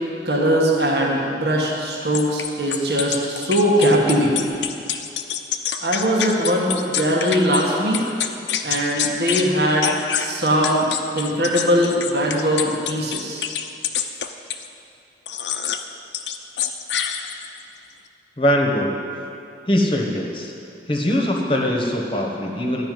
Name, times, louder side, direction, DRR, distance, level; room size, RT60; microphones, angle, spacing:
voice 1, 0.2-4.6 5.8-8.2 8.6-9.9 10.2-10.9 11.1-13.4, equal, 65° right, -2 dB, 1.6 m, -20 dB
sound 1, 2.1-7.6 7.9-9.5 9.8-14.7 15.3-15.9 16.1-17.6, left 9 dB, 85° left, 0.7 m, -27 dB
voice 2, 18.4-18.9 19.7-20.5 20.9-22.9, left 1 dB, 30° left, 0 dB, 1.2 m, -21 dB
13.0 x 5.7 x 9.4 m, 2.6 s
head